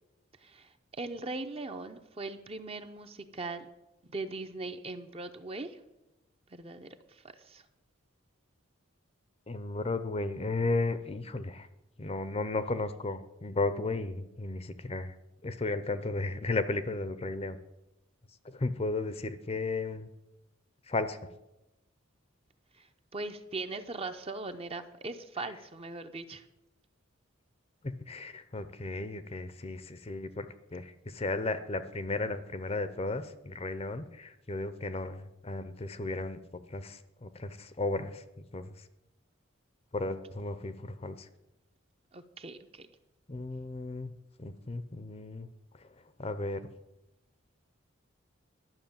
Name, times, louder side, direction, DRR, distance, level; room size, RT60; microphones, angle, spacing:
voice 1, 0.4-3.6 4.1-5.8 6.5-7.6 22.8-22.9 23.1-26.4 42.1-42.9, right 3 dB, 30° right, 8 dB, 0.7 m, -40 dB
voice 2, 9.5-11.7 12.0-15.1 15.4-17.6 18.4-20.1 20.9-21.2 27.8-30.5 30.7-36.4 36.7-38.2 38.5-38.7 39.9-41.2 43.3-44.1 44.4-45.5 46.2-46.6, left 2 dB, 30° left, 12 dB, 0.6 m, -34 dB
11.5 x 6.1 x 8.8 m, 0.93 s
head